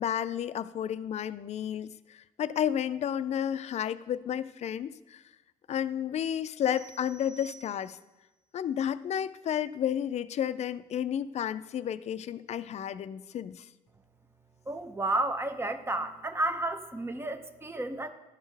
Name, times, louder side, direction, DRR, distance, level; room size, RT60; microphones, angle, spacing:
voice 1, 0.0-5.2 5.7-8.0 8.5-13.7, left 9 dB, 50° left, 15 dB, 0.4 m, -32 dB
sound 1, 6.7-8.3, right 3 dB, 85° right, 1.5 m, -52 dB
voice 2, 14.7-18.1, right 2 dB, 15° right, 9 dB, 0.7 m, -31 dB
12.5 x 4.4 x 3.3 m, 1.1 s
cardioid pair, 85°, 14 cm